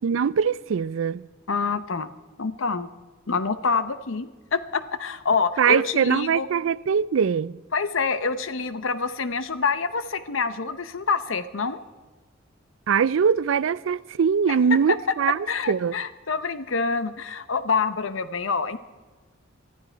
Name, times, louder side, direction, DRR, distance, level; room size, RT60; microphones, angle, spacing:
voice 1, 0.0-1.3 5.6-7.6 12.9-15.9, right 7 dB, 70° right, 0.4 m, -22 dB
voice 2, 1.5-2.1 2.4-2.9 3.3-6.5 7.7-11.8 15.5-18.8, left 4 dB, 70° left, 0.8 m, -26 dB
19.0 x 12.5 x 4.5 m
head